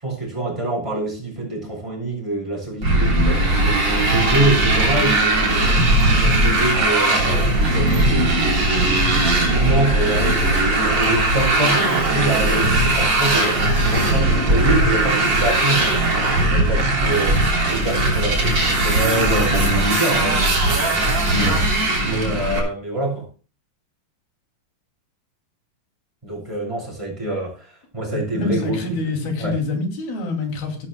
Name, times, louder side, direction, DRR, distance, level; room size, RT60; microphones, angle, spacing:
voice 1, 0.0-5.7 6.0-9.1 9.4-23.3 26.2-29.0 29.4-29.5, right 2 dB, 10° right, -2 dB, 7.2 m, -26 dB
Motorcycle, 2.8-22.6, right 2 dB, 30° right, 3.6 m, -19 dB
voice 2, 28.1-30.9, left 3 dB, 90° left, 3 dB, 4.6 m, -26 dB
16.0 x 12.5 x 2.2 m, 0.36 s
omnidirectional pair, 4.1 m